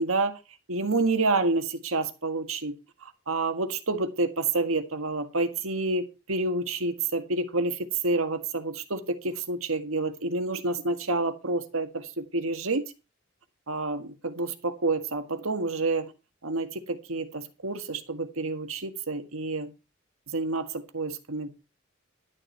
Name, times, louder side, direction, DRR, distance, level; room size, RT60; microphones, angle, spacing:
voice 1, 0.0-0.4 0.7-2.7 3.0-12.8 13.7-16.1 16.4-19.7 20.3-21.5, right 3 dB, 85° right, 8 dB, 1.7 m, -28 dB
11.5 x 10.0 x 4.5 m, 0.29 s
head